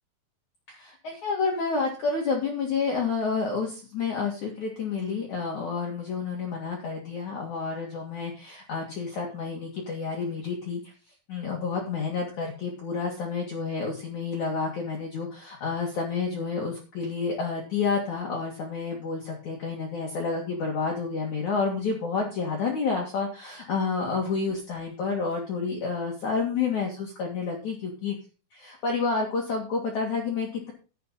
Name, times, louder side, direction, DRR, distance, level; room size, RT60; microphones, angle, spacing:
voice 1, 0.7-10.8 11.3-28.2 28.5-30.7, left 4 dB, 50° left, -1 dB, 2.8 m, -29 dB
12.5 x 9.1 x 4.0 m, 0.33 s
omnidirectional pair, 5.1 m